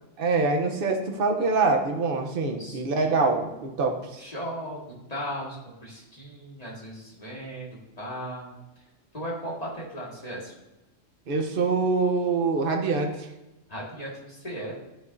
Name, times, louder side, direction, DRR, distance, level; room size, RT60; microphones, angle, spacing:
voice 1, 0.2-4.3 11.3-13.3, right 3 dB, 50° right, 3 dB, 1.1 m, -25 dB
voice 2, 2.6-3.1 4.2-4.8 5.1-8.8 9.1-10.5 13.7-14.7, equal, 30° left, -4 dB, 2.1 m, -37 dB
12.0 x 5.9 x 2.7 m, 1.0 s
omnidirectional pair, 1.2 m